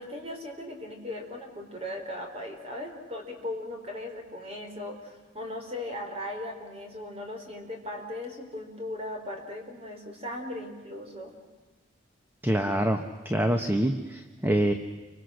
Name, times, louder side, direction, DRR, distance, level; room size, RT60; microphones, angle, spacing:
voice 1, 0.0-11.3, left 1 dB, 30° right, 3 dB, 4.5 m, -38 dB
voice 2, 12.4-14.7, right 1 dB, 10° right, 6 dB, 1.1 m, -26 dB
29.5 x 24.5 x 6.5 m, 1.3 s
head